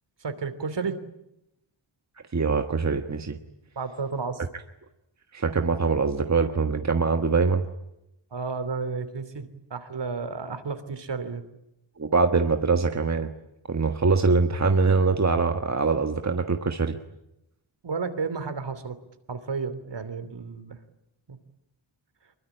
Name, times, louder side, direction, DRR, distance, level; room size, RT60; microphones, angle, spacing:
voice 1, 0.2-1.0 3.8-4.4 8.3-11.4 17.8-19.0 19.3-20.8 21.3-21.4, right 4 dB, 60° right, 11 dB, 3.1 m, -32 dB
voice 2, 2.3-3.4 5.3-7.6 12.0-13.3 13.7-17.0, right 4 dB, 35° right, 6 dB, 1.5 m, -23 dB
25.0 x 22.5 x 10.0 m, 0.86 s
wide cardioid pair, 115°, 49 cm